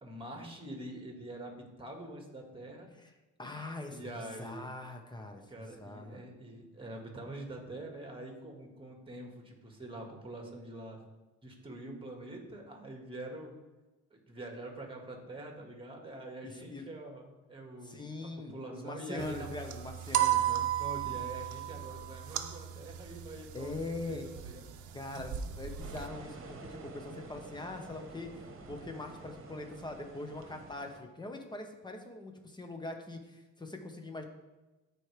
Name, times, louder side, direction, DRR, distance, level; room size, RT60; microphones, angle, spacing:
voice 1, 0.0-2.9 3.9-4.7 5.5-11.0 11.4-13.6 14.1-19.5 20.8-23.7 24.0-24.7, right 1 dB, 15° right, 1 dB, 1.9 m, -45 dB
voice 2, 3.4-6.2 16.4-16.9 17.8-20.7 23.5-24.3 24.9-34.2, left 2 dB, 15° left, 4 dB, 1.2 m, -42 dB
sound 1, 19.2-26.1, right 12 dB, 75° right, 0.7 m, -35 dB
sound 2, 25.8-31.0, right 3 dB, 45° right, 1.3 m, -49 dB
13.5 x 4.8 x 3.4 m, 1.1 s
cardioid pair, 90°, 30 cm